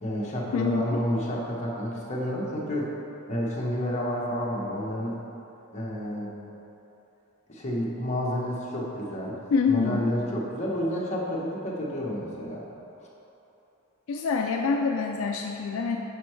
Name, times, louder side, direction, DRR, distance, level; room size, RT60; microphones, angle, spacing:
voice 1, 0.0-2.9 3.3-5.2 5.7-6.3 7.5-9.4 9.7-12.6 13.0-13.1, equal, 30° left, -5 dB, 1.1 m, -30 dB
voice 2, 0.5-1.0 9.5-10.1 14.1-16.0, left 5 dB, 70° left, 2 dB, 0.4 m, -26 dB
8.2 x 5.5 x 3.2 m, 2.9 s
head